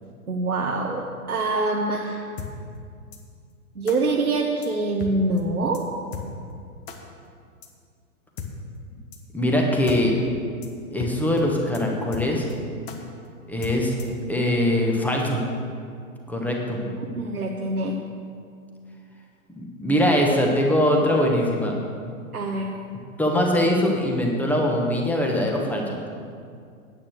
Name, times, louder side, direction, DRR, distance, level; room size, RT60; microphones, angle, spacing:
voice 1, 0.3-2.2 3.7-5.8 16.8-18.0 22.3-22.7, right 2 dB, 85° right, 0 dB, 1.1 m, -25 dB
sound 1, 2.4-2.5 3.1-3.2 3.9-4.0 4.6-4.7 5.0-5.1 5.4-5.5 5.7-5.8 6.1-6.3 6.9-7.0 7.6-7.7 8.4-8.5 9.1-9.2 9.5-9.6 9.9-10.0 10.3-10.4 10.6-10.7 11.0-11.1 11.4-11.5 11.7-11.8 12.1-12.5 12.9-13.0 13.6-14.2, left 7 dB, 35° left, 1.4 m, -35 dB
voice 2, 9.3-10.1 10.9-12.5 13.5-13.9 14.3-15.4 16.3-16.8 19.6-21.8 23.2-26.0, left 1 dB, 5° left, 0 dB, 1.3 m, -22 dB
10.0 x 8.6 x 6.5 m, 2.3 s
figure-of-eight pair, 110°, 43 cm